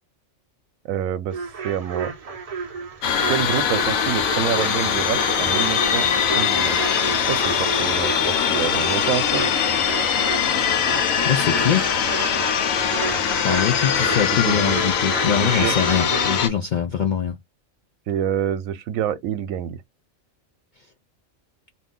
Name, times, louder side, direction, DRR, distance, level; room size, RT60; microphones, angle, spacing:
voice 1, 0.8-1.4 1.6-2.1 3.3-6.1 6.4-6.8 7.3-9.5 13.9-14.2 14.4-14.8 15.2-15.8 18.1-19.8, right 10 dB, 90° right, 1.0 m, -27 dB
sound 1, 1.3-16.4, right 5 dB, 40° right, 0.5 m, -33 dB
sound 2, 3.0-16.5, left 7 dB, 85° left, 1.1 m, -22 dB
voice 2, 11.2-11.9 13.4-17.3, left 8 dB, 65° left, 0.4 m, -23 dB
2.7 x 2.5 x 3.6 m
omnidirectional pair, 1.4 m